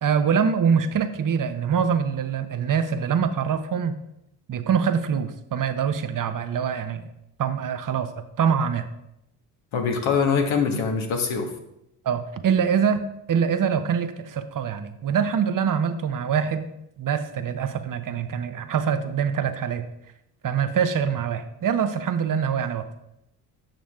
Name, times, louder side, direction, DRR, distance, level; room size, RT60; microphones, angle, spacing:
voice 1, 0.0-4.0 4.5-7.0 7.4-8.9 12.0-16.7 17.0-19.9 20.4-22.9, right 7 dB, 40° right, 9 dB, 0.9 m, -24 dB
voice 2, 9.7-11.5, left 5 dB, 70° left, 3 dB, 1.6 m, -23 dB
9.0 x 6.2 x 3.6 m, 0.83 s
supercardioid pair, 65°, 49 cm